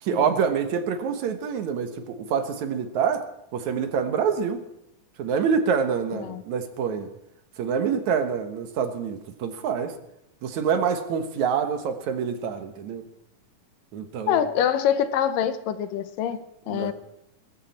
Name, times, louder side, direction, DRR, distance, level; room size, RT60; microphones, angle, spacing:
voice 1, 0.0-3.2 3.5-4.6 5.2-7.1 7.6-9.9 10.4-13.0 13.9-14.4 16.7-16.9, right 6 dB, 65° right, 8 dB, 2.4 m, -26 dB
voice 2, 14.3-16.9, left 9 dB, 80° left, 12 dB, 2.6 m, -25 dB
21.5 x 14.0 x 4.3 m, 0.81 s
omnidirectional pair, 3.9 m